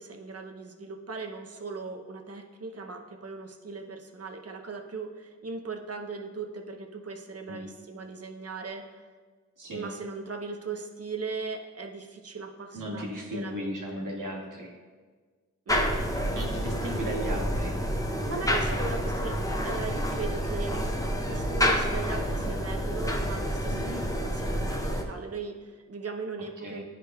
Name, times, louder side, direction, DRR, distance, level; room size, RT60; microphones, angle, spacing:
voice 1, 0.0-9.0 9.7-14.0 15.7-15.9 18.2-19.4 19.6-20.8 21.3-26.8, right 4 dB, 50° right, 3 dB, 0.7 m, -38 dB
voice 2, 9.6-9.9 12.7-14.7 16.3-17.8 23.7-24.0 26.6-26.8, right 1 dB, 80° right, -2 dB, 1.3 m, -36 dB
sound 1, 15.7-25.0, equal, 10° left, 0.5 m, -28 dB
10.5 x 4.8 x 2.3 m, 1.5 s
wide cardioid pair, 95°, 31 cm